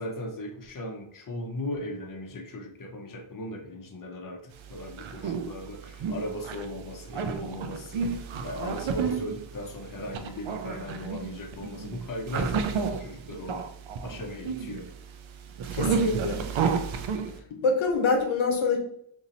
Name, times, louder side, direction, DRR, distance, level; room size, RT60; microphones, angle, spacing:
voice 1, 0.0-4.4 4.7-13.6 14.0-14.8, left 1 dB, 45° left, 3 dB, 0.8 m, -37 dB
sound 1, 4.6-17.4, right 6 dB, 80° right, 0.5 m, -32 dB
voice 2, 15.7-16.4 17.6-18.8, left 4 dB, 85° left, 2 dB, 0.8 m, -25 dB
2.7 x 2.7 x 4.0 m, 0.67 s
wide cardioid pair, 65°, 47 cm